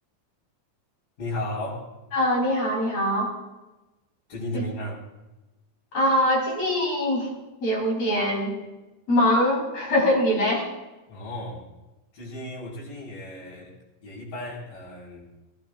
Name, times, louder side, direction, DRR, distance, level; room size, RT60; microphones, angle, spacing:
voice 1, 1.2-1.9 4.3-5.0 11.1-11.7 12.1-13.7 14.0-15.3, left 1 dB, 55° left, -6 dB, 6.5 m, -34 dB
voice 2, 2.1-3.3 4.5-4.6 5.9-7.3 7.6-8.6 9.1-10.7, left 1 dB, 40° left, -2 dB, 4.2 m, -23 dB
20.0 x 17.5 x 2.5 m, 1.1 s
omnidirectional pair, 4.6 m